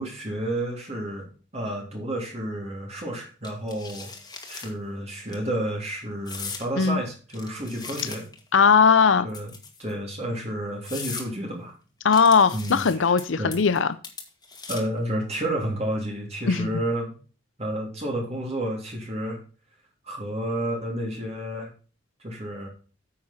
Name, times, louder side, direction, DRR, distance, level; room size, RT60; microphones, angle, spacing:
voice 1, 0.0-4.1 4.5-8.2 9.2-9.5 9.8-11.7 12.5-13.5 14.7-17.1 17.6-19.4 20.0-21.7 22.2-22.7, right 1 dB, 35° right, 3.0 m, -31 dB
sound 1, 3.4-4.7 5.1-5.4 6.3-6.7 7.3-8.5 9.3-9.9 10.4-10.5 10.9-11.3 12.1-13.2 13.5-13.8 14.0-15.0, left 5 dB, 20° left, 2.2 m, -38 dB
voice 2, 8.5-9.3 12.0-13.9 16.5-16.7, left 5 dB, 80° left, 0.6 m, -19 dB
9.8 x 7.7 x 4.3 m
head